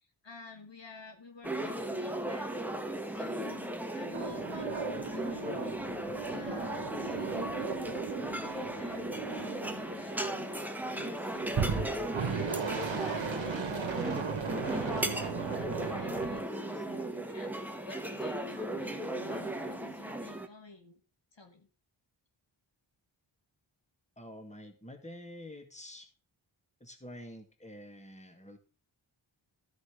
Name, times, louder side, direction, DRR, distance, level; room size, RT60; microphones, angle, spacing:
voice 1, 0.0-2.6 3.0-5.8 6.3-7.7 8.4-21.0 21.3-21.7, left 3 dB, 60° left, 4 dB, 1.5 m, -51 dB
sound 1, 1.4-20.5, right 1 dB, 5° right, 1.1 m, -36 dB
sound 2, 4.1-10.5 11.5-16.4, right 6 dB, 70° right, 1.3 m, -37 dB
voice 2, 24.2-26.1 26.8-28.6, left 1 dB, 15° left, 4 dB, 2.0 m, -48 dB
13.0 x 5.2 x 5.0 m, 0.35 s
wide cardioid pair, 60°, 49 cm